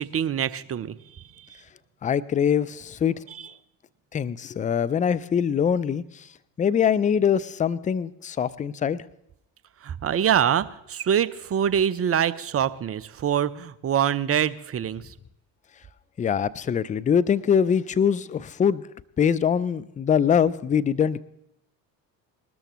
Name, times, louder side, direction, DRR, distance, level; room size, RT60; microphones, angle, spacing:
voice 1, 0.0-1.6 3.3-3.5 9.8-15.1, right 9 dB, 30° right, 16 dB, 0.7 m, -25 dB
voice 2, 2.0-3.2 4.1-6.3 6.6-9.0 16.2-18.9 19.2-21.2, left 7 dB, 15° left, 16 dB, 0.4 m, -23 dB
20.0 x 13.0 x 3.1 m, 0.83 s
hypercardioid pair, 65°, 49 cm